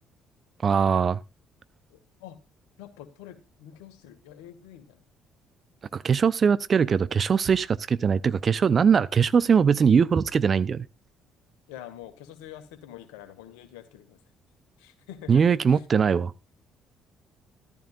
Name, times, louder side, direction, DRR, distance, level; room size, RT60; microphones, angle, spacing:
voice 1, 0.6-1.2 5.9-10.9 15.3-16.3, right 6 dB, 40° right, 0.7 m, -21 dB
voice 2, 1.9-2.4 2.8-5.0 11.7-14.2 14.8-15.4 15.7-15.8, left 11 dB, 70° left, 1.9 m, -45 dB
14.0 x 13.5 x 2.5 m
figure-of-eight pair, 45°, 0 cm